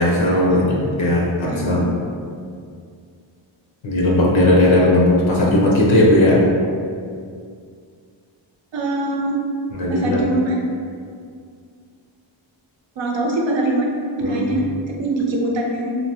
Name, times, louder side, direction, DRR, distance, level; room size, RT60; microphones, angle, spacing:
voice 1, 0.0-1.9 3.8-6.4 9.7-10.2 14.2-14.5, left 1 dB, 70° left, -4 dB, 0.6 m, -17 dB
voice 2, 1.5-1.8 8.7-9.4 9.9-10.6 13.0-16.0, right 2 dB, 65° right, -1 dB, 0.6 m, -23 dB
2.6 x 2.2 x 2.7 m, 2.2 s
wide cardioid pair, 75°, 48 cm